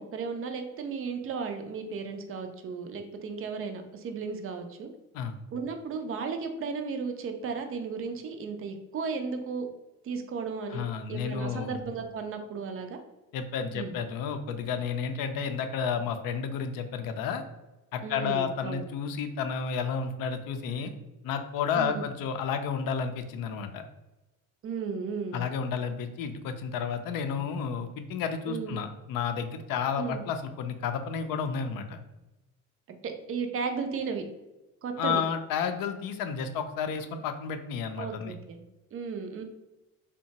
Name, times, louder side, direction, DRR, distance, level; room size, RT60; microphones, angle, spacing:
voice 1, 0.0-4.9 5.5-9.7 10.0-13.0 13.7-13.9 18.0-18.8 21.7-22.0 24.6-25.4 28.5-28.8 30.0-30.2 32.9-34.2 34.8-35.2 38.0-38.6 38.9-39.4, right 5 dB, 30° right, 6 dB, 0.5 m, -35 dB
voice 2, 10.7-11.8 13.3-17.4 17.9-20.9 21.2-23.8 25.3-32.0 35.0-38.3, left 6 dB, 55° left, 7 dB, 0.5 m, -31 dB
2.8 x 2.2 x 2.7 m, 1.0 s
hypercardioid pair, 60°, 43 cm